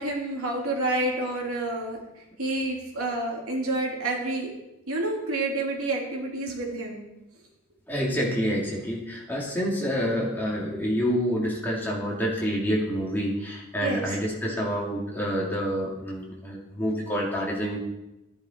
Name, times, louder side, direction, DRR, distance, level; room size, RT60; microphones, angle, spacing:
voice 1, 0.0-2.0 2.4-4.5 4.9-7.0 13.8-14.1, right 2 dB, 80° right, -1 dB, 2.9 m, -29 dB
voice 2, 7.9-17.8, equal, 10° left, -5 dB, 2.9 m, -28 dB
14.5 x 10.5 x 4.6 m, 0.93 s
head